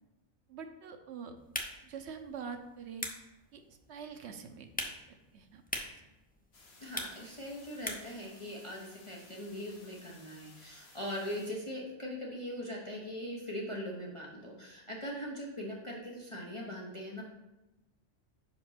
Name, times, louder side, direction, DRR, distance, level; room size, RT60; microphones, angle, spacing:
voice 1, 0.5-1.4 1.8-3.0 3.5-4.9 5.3-5.6, right 6 dB, 70° right, 6 dB, 1.0 m, -45 dB
sound 1, 1.4-8.2, left 1 dB, 10° left, 0.5 m, -44 dB
sound 2, 6.5-11.5, left 3 dB, 60° left, 1.3 m, -58 dB
voice 2, 6.8-17.2, equal, 30° left, -3 dB, 0.9 m, -41 dB
5.2 x 5.0 x 5.7 m, 0.99 s
omnidirectional pair, 1.2 m